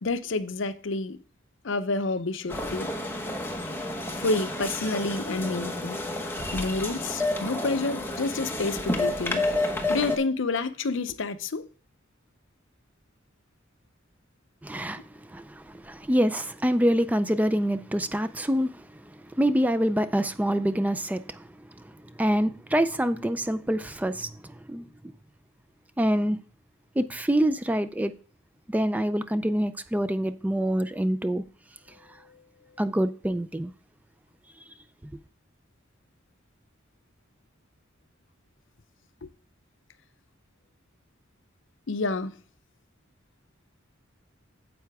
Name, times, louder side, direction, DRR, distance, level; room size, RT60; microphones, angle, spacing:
voice 1, 0.0-1.2 1.6-2.9 4.2-6.0 6.5-11.7 32.2-32.4 39.2-39.3 41.9-42.3, left 3 dB, 65° left, 0.6 m, -29 dB
sound 1, 2.5-10.2, left 2 dB, 10° left, 1.2 m, -30 dB
voice 2, 14.6-18.9 19.4-21.5 21.8-21.9 22.2-24.8 26.0-26.4 27.0-28.1 28.7-31.4 32.8-33.7, equal, 10° right, 0.3 m, -26 dB
9.3 x 7.6 x 3.5 m
head